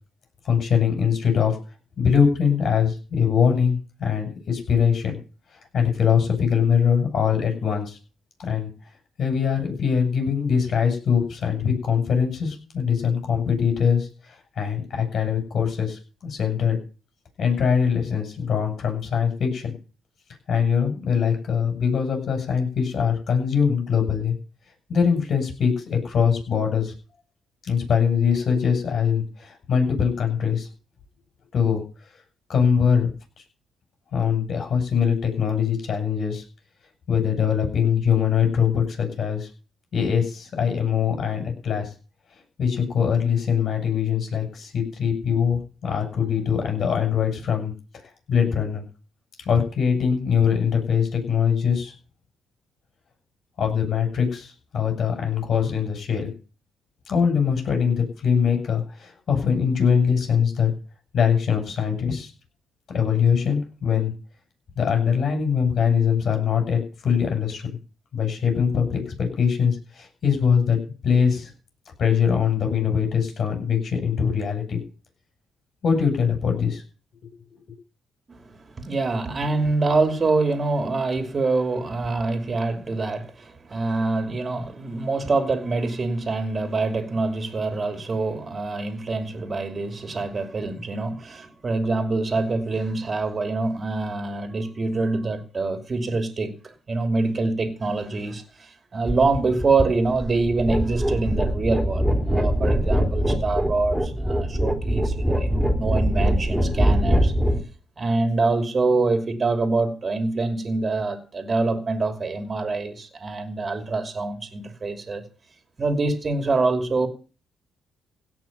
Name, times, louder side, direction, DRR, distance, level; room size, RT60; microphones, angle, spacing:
voice 1, 0.4-1.6 2.0-5.2 5.7-8.0 8.4-8.7 9.2-16.8 17.4-19.7 20.5-24.4 24.9-26.9 27.6-30.7 31.5-31.8 32.5-33.1 34.1-36.4 37.1-39.5 39.9-41.9 42.6-47.7 48.3-48.8 49.5-51.9 53.6-56.3 57.1-60.7 61.1-62.3 62.9-64.1 64.8-67.6 68.1-71.5 72.0-74.8 75.8-76.8 77.2-77.3, left 7 dB, 55° left, 7.4 m, -22 dB
voice 2, 78.3-107.3 108.0-115.2 115.8-117.1, right 3 dB, 35° right, 2.8 m, -25 dB
sound 1, 99.1-107.6, equal, ahead, 3.7 m, -23 dB
17.0 x 6.0 x 9.3 m
cardioid pair, 90°, 0 cm